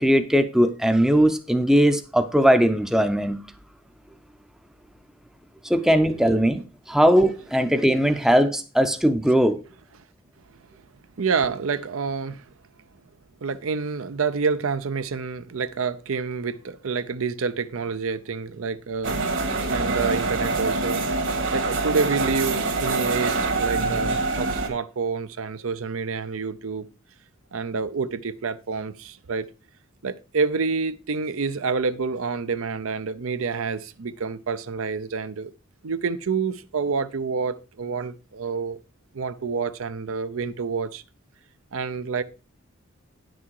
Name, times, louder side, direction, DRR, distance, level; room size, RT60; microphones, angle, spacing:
voice 1, 0.0-3.4 5.6-9.6, equal, ahead, 0.5 m, -19 dB
voice 2, 11.2-12.4 13.4-19.3 19.7-21.0 21.5-26.9 27.5-29.5 30.0-35.5 35.8-38.8 39.1-41.0 41.7-42.2, right 5 dB, 80° right, 0.6 m, -28 dB
sound 1, 19.0-24.7, right 3 dB, 65° right, 1.9 m, -25 dB
9.8 x 6.2 x 4.6 m
head